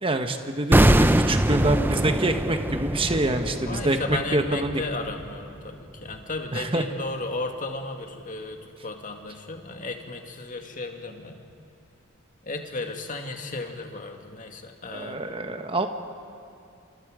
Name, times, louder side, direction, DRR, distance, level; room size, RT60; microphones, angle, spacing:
voice 1, 0.0-4.8 6.5-6.8 14.9-15.9, right 2 dB, 25° right, 6 dB, 1.4 m, -26 dB
sound 1, 0.7-5.7 6.0-6.2, right 1 dB, 10° right, 0.6 m, -23 dB
voice 2, 3.6-11.4 12.4-15.2, left 2 dB, 40° left, 4 dB, 2.2 m, -34 dB
30.0 x 27.0 x 5.1 m, 2.6 s
head